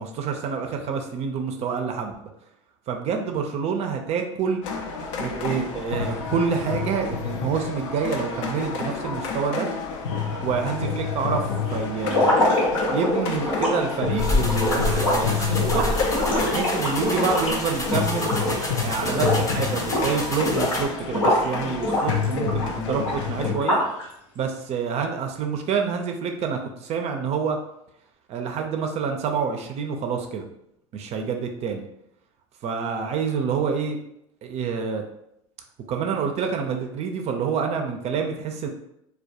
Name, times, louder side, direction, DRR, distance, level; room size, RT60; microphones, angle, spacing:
voice 1, 0.0-2.3 2.9-4.6 5.2-9.7 10.4-12.4 12.9-16.0 16.4-18.3 18.8-23.8 24.4-27.6 28.3-30.5 30.9-31.8 32.6-34.0 34.4-35.0 35.9-38.7, right 6 dB, 40° right, 4 dB, 0.4 m, -27 dB
sound 1, 4.6-23.5, left 6 dB, 70° left, 0.4 m, -29 dB
sound 2, 12.0-18.7 19.0-19.5 19.8-21.5 21.8-24.0, left 1 dB, 90° left, 1.1 m, -24 dB
sound 3, 14.2-20.8, left 1 dB, 20° left, 0.6 m, -29 dB
2.2 x 2.1 x 2.7 m, 0.78 s
hypercardioid pair, 85°, 16 cm